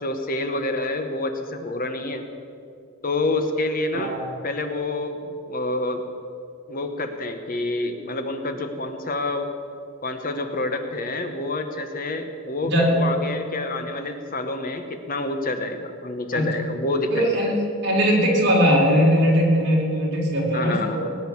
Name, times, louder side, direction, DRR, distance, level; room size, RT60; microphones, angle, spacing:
voice 1, 0.0-2.2 3.0-4.2 4.4-6.0 6.7-9.5 10.0-17.4 20.5-21.1, left 2 dB, 40° left, 7 dB, 1.0 m, -28 dB
voice 2, 3.9-4.3 12.7-12.9 16.3-16.4 17.1-17.5 17.8-20.8, equal, 50° right, -2 dB, 4.0 m, -19 dB
19.5 x 10.0 x 7.2 m, 2.4 s
head